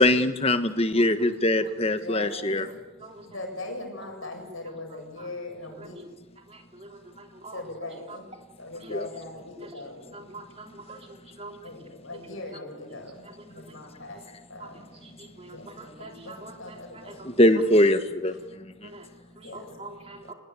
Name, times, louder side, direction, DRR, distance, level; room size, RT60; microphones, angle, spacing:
voice 1, 0.0-2.7 8.9-9.1 17.4-18.3, left 1 dB, 30° left, 9 dB, 1.4 m, -21 dB
voice 2, 2.0-2.7 3.2-6.0 7.5-8.3 8.6-10.1 11.6-14.2 14.5-14.9 15.4-17.2 19.3-19.9 20.2-20.4, left 2 dB, 70° left, 3 dB, 8.0 m, -40 dB
voice 3, 6.5-7.6 8.1-8.2 8.8-9.0 9.6-9.7 10.1-11.7 13.4-13.8 14.6-14.7 15.0-17.4 18.8-19.1 19.4-20.3, right 3 dB, 30° right, 3 dB, 3.4 m, -45 dB
26.0 x 20.5 x 8.4 m, 1.1 s
head